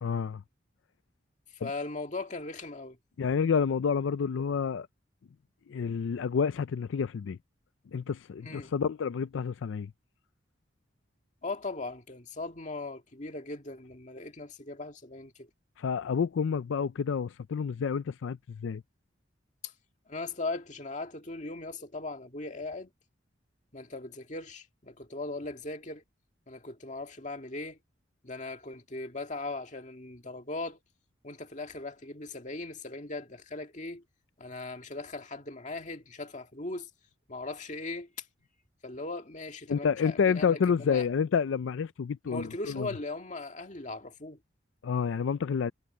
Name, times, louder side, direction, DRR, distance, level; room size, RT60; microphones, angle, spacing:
voice 1, 0.0-0.4 1.6-1.7 3.2-4.9 5.7-7.4 7.9-9.9 15.8-18.8 39.7-42.9 44.8-45.7, left 6 dB, 80° left, 0.4 m, -29 dB
voice 2, 1.5-3.0 8.4-8.7 11.4-15.5 19.6-19.7 20.1-22.9 23.7-26.0 26.5-27.8 28.2-30.8 31.2-34.0 34.4-36.9 37.3-38.1 38.8-41.1 42.2-44.4, left 2 dB, 40° left, 2.0 m, -39 dB
head